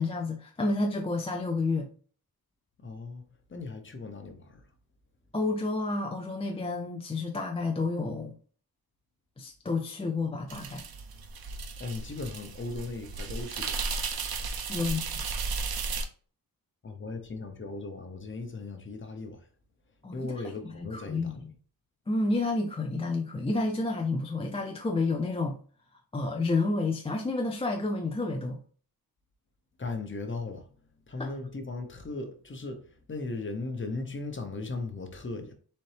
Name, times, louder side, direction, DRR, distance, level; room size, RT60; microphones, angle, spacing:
voice 1, 0.0-1.9 5.3-8.4 9.4-10.9 14.7-15.0 20.0-20.3 20.7-21.5 22.1-25.6 26.1-28.6 31.2-31.3, left 3 dB, 15° left, 0.4 m, -30 dB
voice 2, 2.8-4.7 11.8-13.8 16.8-19.4 20.1-21.4 29.8-30.7 31.1-35.5, left 3 dB, 30° left, 0.8 m, -37 dB
sound 1, 10.5-16.0, right 4 dB, 70° right, 0.7 m, -34 dB
4.2 x 3.7 x 3.3 m
wide cardioid pair, 160°, 37 cm